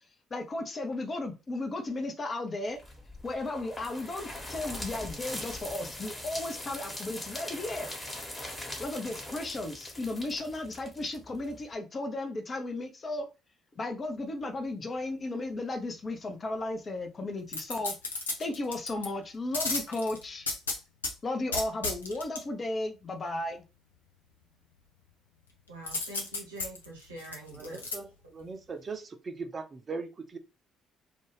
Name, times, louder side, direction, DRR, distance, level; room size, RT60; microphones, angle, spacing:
voice 1, 0.3-2.8 3.2-7.9 8.8-13.3 13.8-18.0 18.4-20.5 21.2-23.6, left 2 dB, 35° left, 0.7 m, -35 dB
sound 1, 2.8-11.6, left 1 dB, 20° left, 1.2 m, -41 dB
sound 2, 17.5-19.1 19.5-21.1 21.5-22.4 25.9-27.9 28.4-28.5, left 3 dB, 80° left, 0.5 m, -33 dB
voice 2, 25.7-27.8, right 1 dB, 80° right, 1.0 m, -44 dB
voice 3, 27.5-30.4, right 4 dB, 35° right, 0.5 m, -40 dB
2.5 x 2.3 x 3.1 m
figure-of-eight pair, 45°, 0 cm